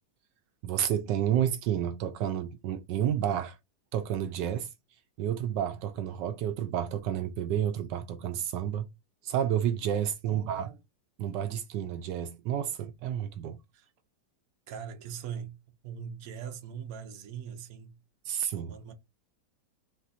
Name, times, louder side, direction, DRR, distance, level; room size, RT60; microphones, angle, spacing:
voice 1, 0.6-3.6 3.9-4.7 5.2-8.9 9.2-10.7 11.2-13.6 18.2-18.8, right 10 dB, 80° right, 1.2 m, -30 dB
voice 2, 10.2-10.8 13.7-13.9 14.7-15.6 15.8-18.0 18.6-18.9, right 7 dB, 60° right, 1.2 m, -41 dB
4.3 x 2.5 x 4.1 m
omnidirectional pair, 1.9 m